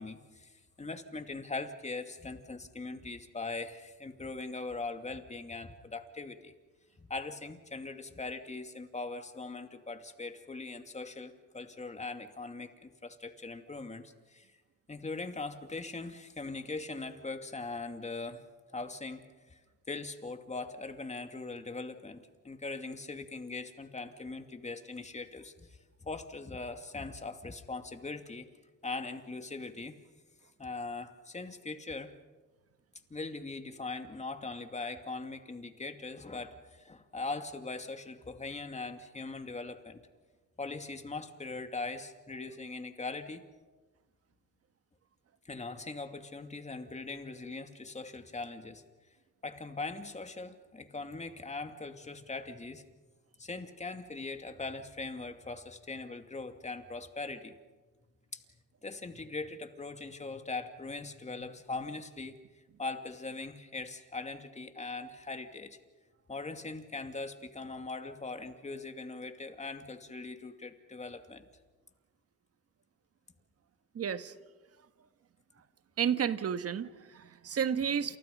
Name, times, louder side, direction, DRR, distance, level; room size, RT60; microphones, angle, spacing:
voice 1, 0.0-6.5 7.0-14.5 14.9-18.4 18.7-19.6 19.9-28.5 28.8-30.0 30.6-32.2 33.1-40.0 40.6-43.4 45.4-48.8 49.4-52.8 53.4-57.6 58.3-58.4 58.8-65.8 66.3-71.5, left 3 dB, 25° left, 6 dB, 2.6 m, -41 dB
voice 2, 73.9-74.3 76.0-78.2, right 8 dB, 50° right, 10 dB, 1.5 m, -31 dB
29.0 x 28.5 x 5.5 m, 1.3 s
cardioid pair, 90°, 30 cm